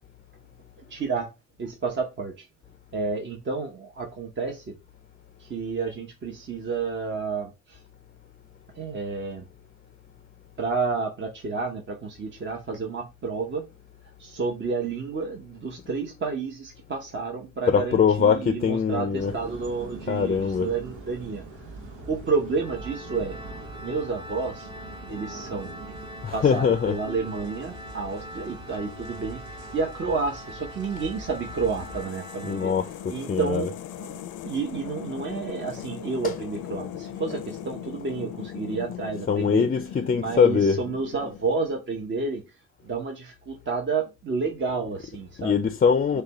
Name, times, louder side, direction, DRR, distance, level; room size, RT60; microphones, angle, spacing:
voice 1, 0.8-1.3 1.6-2.5 2.9-4.8 5.4-7.8 8.7-9.5 10.6-13.6 14.0-21.4 21.9-23.4 23.8-24.7 25.1-25.7 26.3-32.7 33.1-34.2 34.4-39.7 40.2-42.6 42.8-45.6 46.1-46.2, right 4 dB, 40° right, 0.9 m, -30 dB
voice 2, 17.7-19.3 20.1-20.7 26.2-26.9 32.4-33.6 39.3-40.8 45.4-46.2, left 6 dB, 30° left, 0.5 m, -22 dB
sound 1, 19.1-32.0, right 2 dB, 85° right, 1.3 m, -43 dB
Organ, 22.6-33.3, equal, 15° right, 0.6 m, -43 dB
sound 2, 30.8-41.9, left 10 dB, 80° left, 0.6 m, -39 dB
6.5 x 2.3 x 2.9 m
cardioid pair, 90°, 30 cm